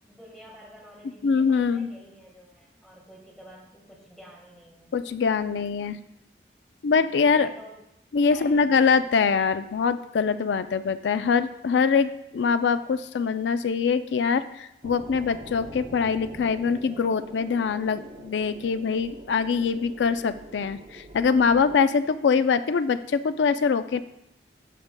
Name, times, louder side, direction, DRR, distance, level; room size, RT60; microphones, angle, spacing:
voice 1, 0.1-4.9 7.3-7.7 8.3-9.4, equal, ahead, -2 dB, 1.5 m, -49 dB
voice 2, 1.2-1.9 4.9-6.0 6.8-7.5 8.1-24.0, left 5 dB, 85° left, 12 dB, 0.4 m, -23 dB
sound 1, 14.8-21.8, right 1 dB, 40° right, 0.6 m, -44 dB
13.5 x 4.8 x 2.2 m, 0.83 s
head